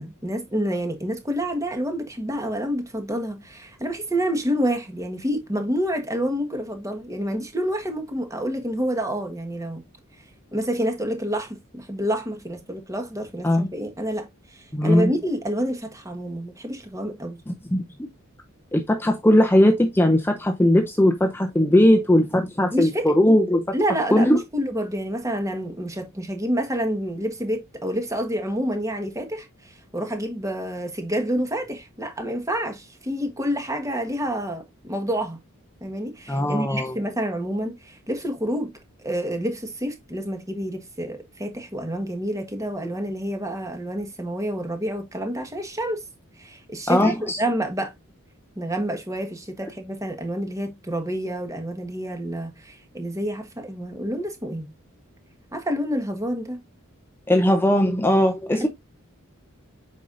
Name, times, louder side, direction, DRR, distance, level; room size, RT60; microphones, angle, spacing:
voice 1, 0.0-9.8 10.5-17.4 22.7-23.1 23.7-35.4 35.8-38.7 39.0-46.0 46.4-47.9 48.5-54.7 55.5-56.6 58.5-58.7, equal, 15° right, 1.4 m, -28 dB
voice 2, 14.7-15.1 17.5-18.1 18.7-23.6 24.1-24.4 36.3-37.0 46.9-47.4 57.3-58.7, left 1 dB, 10° left, 0.7 m, -19 dB
8.1 x 5.5 x 2.5 m
head